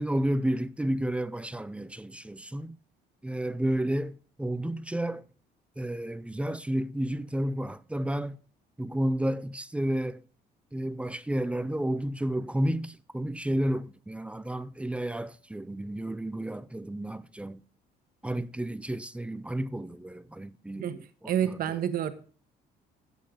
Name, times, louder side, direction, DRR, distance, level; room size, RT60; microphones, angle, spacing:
voice 1, 0.0-2.8 3.2-5.2 5.8-8.4 8.8-10.2 10.7-17.6 18.2-21.0 21.5-21.6, right 1 dB, 5° right, 0.6 m, -31 dB
voice 2, 21.2-22.1, right 10 dB, 60° right, 1.4 m, -28 dB
13.5 x 8.3 x 3.8 m
cardioid pair, 110°, 17 cm